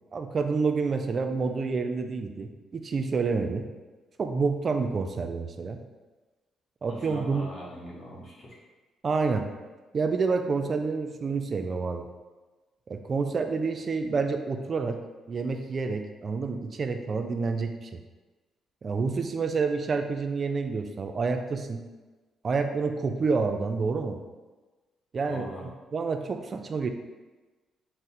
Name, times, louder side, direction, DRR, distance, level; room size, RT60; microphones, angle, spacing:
voice 1, 0.1-3.7 4.2-5.8 6.8-7.5 9.0-9.5 9.9-12.1 12.9-15.0 15.3-18.0 18.8-21.8 22.4-24.2 25.1-26.9, right 4 dB, 45° right, 6 dB, 0.3 m, -28 dB
voice 2, 6.8-8.6 25.3-25.6, equal, 40° left, -5 dB, 1.2 m, -41 dB
3.7 x 2.0 x 4.2 m, 1.2 s
cardioid pair, 90°, 0 cm